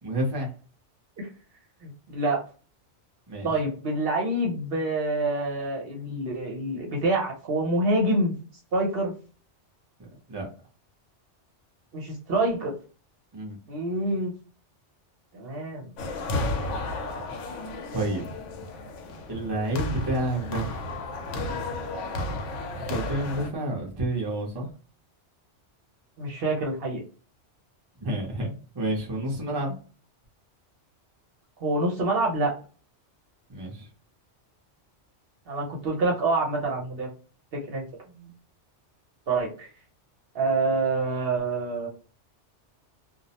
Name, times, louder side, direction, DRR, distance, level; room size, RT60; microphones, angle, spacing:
voice 1, 0.0-0.5 3.3-3.5 10.0-10.5 13.3-13.6 17.3-17.4 17.9-18.2 19.3-20.8 22.9-24.7 28.0-29.8 33.5-33.9 38.1-38.3, right 1 dB, 25° right, -1 dB, 0.6 m, -30 dB
voice 2, 1.8-2.4 3.4-8.3 8.7-9.1 11.9-12.7 13.7-14.3 15.3-15.9 26.2-27.0 31.6-32.5 35.5-37.1 37.5-37.9 39.3-39.7 40.3-41.9, right 2 dB, 60° right, -1 dB, 0.9 m, -26 dB
sound 1, 16.0-23.5, left 2 dB, 90° left, 0.9 m, -33 dB
2.4 x 2.0 x 2.8 m, 0.38 s
omnidirectional pair, 1.2 m